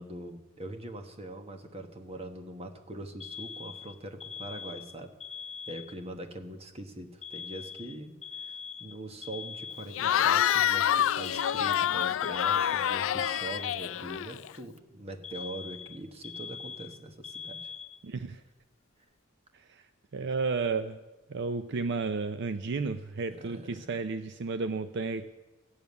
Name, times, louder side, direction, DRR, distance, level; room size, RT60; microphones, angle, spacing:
voice 1, 0.0-5.1 5.7-17.7 23.3-23.9, right 1 dB, 30° right, 6 dB, 1.2 m, -42 dB
Alarm, 3.2-6.2 7.2-10.2 11.2-14.2 15.2-18.2, left 6 dB, 30° left, 0.7 m, -42 dB
Cheering / Crowd, 9.9-14.6, left 10 dB, 65° left, 0.3 m, -27 dB
voice 2, 18.0-18.4 19.7-19.9 20.1-21.0 21.3-25.3, right 4 dB, 55° right, 10 dB, 0.5 m, -32 dB
14.5 x 7.1 x 9.5 m, 1.1 s
head